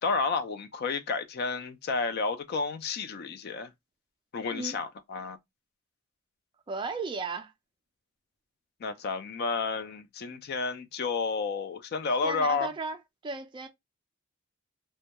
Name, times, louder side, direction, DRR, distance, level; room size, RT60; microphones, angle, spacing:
voice 1, 0.0-3.7 4.3-5.4 8.8-12.7, left 4 dB, 50° left, 0.4 m, -31 dB
voice 2, 6.7-7.5 12.2-13.0 13.2-13.7, right 4 dB, 25° right, 0.3 m, -35 dB
2.2 x 2.2 x 2.7 m
head